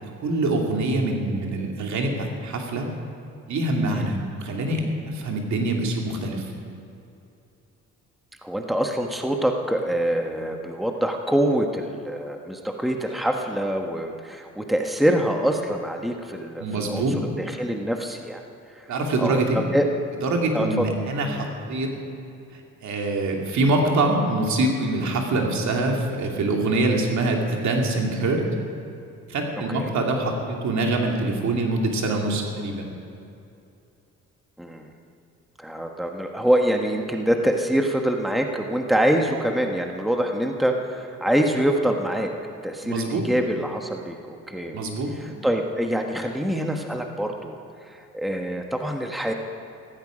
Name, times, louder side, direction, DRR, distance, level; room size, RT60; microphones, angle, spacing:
voice 1, 0.0-2.9 3.5-6.5 16.6-17.2 18.9-19.6 20.2-21.9 22.5-28.4 29.3-32.9 42.8-43.3 44.7-45.1, right 2 dB, 70° right, 1 dB, 2.7 m, -24 dB
voice 2, 8.4-17.1 17.4-18.4 18.7-18.9 19.2-19.4 19.7-19.9 20.5-20.8 29.6-29.9 34.6-34.9 35.6-42.3 42.6-44.8 45.2-47.6 47.9-49.3, equal, ahead, 3 dB, 1.3 m, -25 dB
15.5 x 15.0 x 5.1 m, 2.7 s
cardioid pair, 90°, 30 cm